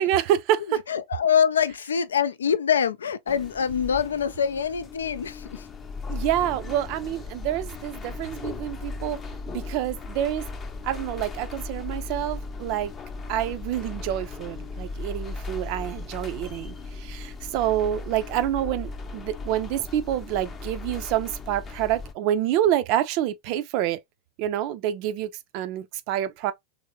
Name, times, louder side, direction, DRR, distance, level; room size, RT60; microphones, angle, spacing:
voice 1, 0.0-0.8 6.1-9.2 9.5-10.4 10.8-12.9 13.3-24.0 24.4-26.5, right 11 dB, 50° right, 0.4 m, -27 dB
voice 2, 0.7-5.7, left 7 dB, 75° left, 0.3 m, -25 dB
sound 1, 3.3-22.1, left 3 dB, 25° left, 0.6 m, -37 dB
3.1 x 2.7 x 2.8 m
figure-of-eight pair, 90°, 0 cm